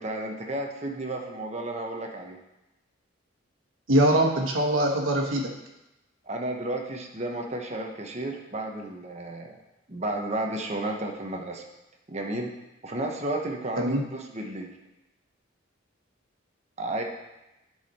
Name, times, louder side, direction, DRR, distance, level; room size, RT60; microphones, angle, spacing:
voice 1, 0.0-2.4 6.3-9.6 9.9-11.6 12.1-12.5 12.8-14.7 16.8-17.0, right 1 dB, 35° right, 2 dB, 1.0 m, -32 dB
voice 2, 3.9-5.5 13.8-14.0, right 1 dB, 80° right, 0 dB, 1.4 m, -22 dB
11.0 x 4.9 x 4.3 m, 0.97 s
head